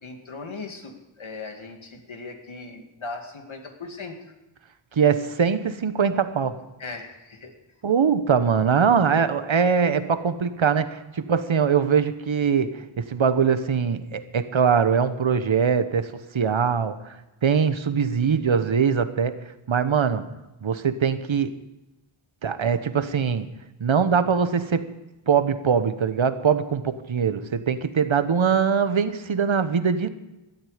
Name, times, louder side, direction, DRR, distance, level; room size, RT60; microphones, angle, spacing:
voice 1, 0.0-4.2 6.8-7.5 9.0-9.2, left 3 dB, 70° left, 3 dB, 2.4 m, -38 dB
voice 2, 4.9-6.6 7.8-17.2 17.4-19.4 19.7-20.3 20.6-21.5 22.4-23.5 23.8-24.9 25.3-30.1, right 6 dB, 70° right, 11 dB, 1.1 m, -22 dB
17.5 x 12.5 x 5.1 m, 1.0 s
wide cardioid pair, 60°, 49 cm